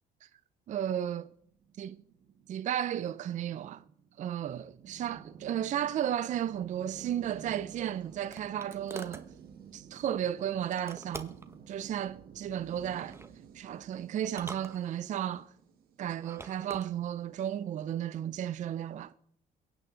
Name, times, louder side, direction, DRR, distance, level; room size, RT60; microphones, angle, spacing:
voice 1, 0.7-1.3 1.8-2.0 2.5-3.8 4.2-9.3 9.7-11.3 11.7-13.2 13.5-15.5 16.0-19.1, right 10 dB, 45° right, 0.5 m, -34 dB
sound 1, 1.4-16.9, right 7 dB, 60° right, 1.6 m, -52 dB
sound 2, 7.8-9.3 10.7-11.5 12.9-13.3 14.2-15.3 16.1-16.9, right 3 dB, 15° right, 1.1 m, -46 dB
22.5 x 9.1 x 3.9 m
cardioid pair, 110°, 17 cm